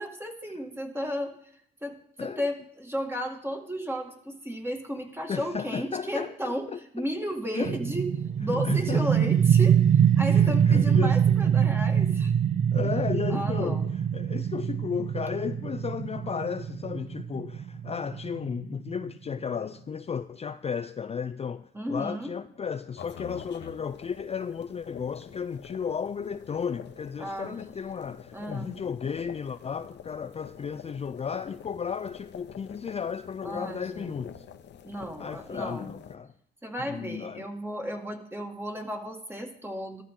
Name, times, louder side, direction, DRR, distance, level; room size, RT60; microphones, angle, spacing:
voice 1, 0.0-1.3 1.8-6.7 6.9-8.1 8.4-12.3 13.3-13.9 21.7-22.3 27.2-27.5 28.3-28.7 33.4-34.2 34.8-35.9 36.6-40.0, equal, 10° right, 2.1 m, -34 dB
voice 2, 5.3-7.1 7.5-7.8 8.5-9.3 10.3-11.2 12.7-34.5 35.2-36.3 36.8-37.5, left 6 dB, 30° left, 0.5 m, -34 dB
sound 1, 7.6-19.1, right 8 dB, 40° right, 0.4 m, -24 dB
sound 2, 23.0-36.1, left 8 dB, 60° left, 1.0 m, -47 dB
14.5 x 13.0 x 3.8 m
cardioid pair, 90°, 20 cm